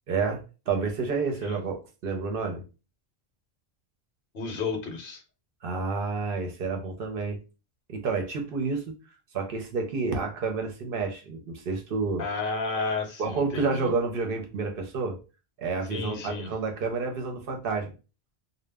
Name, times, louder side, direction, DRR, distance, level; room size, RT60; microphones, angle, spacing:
voice 1, 0.1-2.6 5.6-7.4 7.9-8.8 9.3-12.3 13.2-15.2 15.6-17.9, right 4 dB, 65° right, 3 dB, 0.8 m, -29 dB
voice 2, 4.3-5.2 12.2-13.9 15.9-16.5, left 3 dB, 60° left, 4 dB, 0.8 m, -32 dB
2.1 x 2.0 x 3.3 m, 0.31 s
omnidirectional pair, 1.0 m